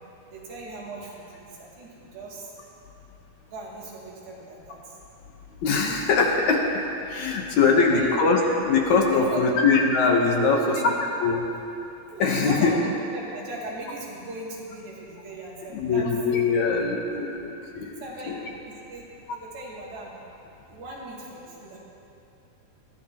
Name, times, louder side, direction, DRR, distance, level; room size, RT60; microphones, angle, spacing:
voice 1, 0.3-2.5 3.5-4.9 7.3-8.1 9.1-9.5 10.4-10.8 12.1-16.1 18.0-20.2 20.7-21.8, right 2 dB, 75° right, -5 dB, 4.4 m, -38 dB
voice 2, 5.6-6.7 7.1-10.6 11.2-11.4 12.2-12.8 15.7-18.1, left 4 dB, 65° left, 1 dB, 2.1 m, -22 dB
22.5 x 15.0 x 3.0 m, 2.8 s
omnidirectional pair, 4.3 m